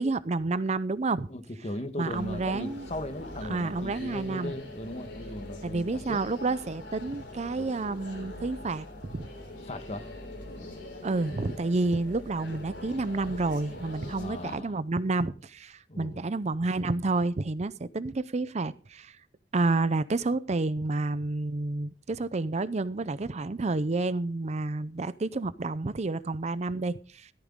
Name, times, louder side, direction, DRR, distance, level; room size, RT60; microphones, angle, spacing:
voice 1, 0.0-1.3 2.0-2.9 3.5-4.5 5.6-9.3 11.0-19.2 19.5-27.3, right 3 dB, 40° right, 0.5 m, -30 dB
voice 2, 1.3-6.2 9.7-10.1 10.5-10.8 14.1-14.7 15.9-16.2, left 1 dB, 40° left, 1.3 m, -38 dB
sound 1, 2.1-14.6, left 1 dB, 80° left, 3.6 m, -43 dB
15.0 x 13.5 x 3.6 m
head